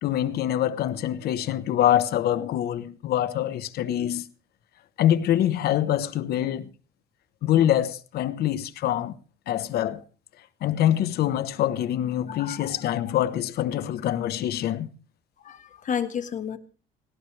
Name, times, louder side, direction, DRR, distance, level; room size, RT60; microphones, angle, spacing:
voice 1, 0.0-4.3 5.0-6.7 7.4-9.2 9.5-10.0 10.6-14.9, left 11 dB, 70° left, 1.1 m, -25 dB
voice 2, 12.3-13.0 15.4-16.6, left 8 dB, 50° left, 1.6 m, -32 dB
18.5 x 17.0 x 3.3 m
cardioid pair, 110°, 17 cm